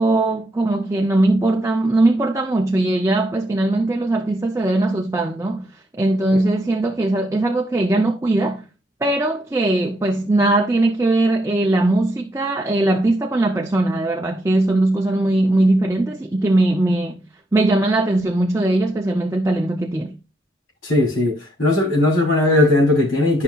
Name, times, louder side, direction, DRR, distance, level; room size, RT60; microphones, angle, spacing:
voice 1, 0.0-8.6 9.0-17.2 17.5-20.2, right 2 dB, 15° right, 0.5 m, -19 dB
voice 2, 20.8-23.4, left 2 dB, 85° left, 3.3 m, -18 dB
11.0 x 5.6 x 2.3 m
head